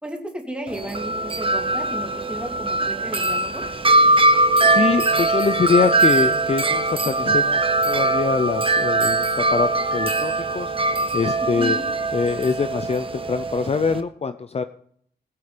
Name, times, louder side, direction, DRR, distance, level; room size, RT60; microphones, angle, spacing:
voice 1, 0.0-3.6 11.6-11.8, right 1 dB, 5° right, 1 dB, 2.7 m, -33 dB
Wind chime, 0.7-14.0, right 2 dB, 30° right, 0.9 m, -21 dB
voice 2, 4.2-11.8 12.1-14.6, left 5 dB, 35° left, 10 dB, 0.6 m, -24 dB
20.0 x 8.4 x 5.1 m, 0.63 s
wide cardioid pair, 160°, 17 cm